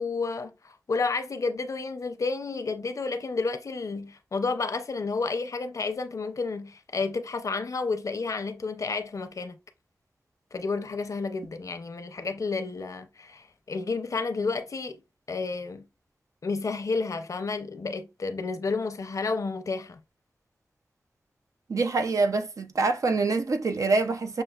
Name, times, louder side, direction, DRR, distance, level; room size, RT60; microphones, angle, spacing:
voice 1, 0.0-9.6 10.5-15.0 15.3-15.9 16.4-20.0, left 4 dB, 80° left, 0.6 m, -31 dB
voice 2, 21.7-24.4, right 3 dB, 90° right, 0.5 m, -25 dB
6.6 x 2.4 x 2.3 m
cardioid pair, 45°, 5 cm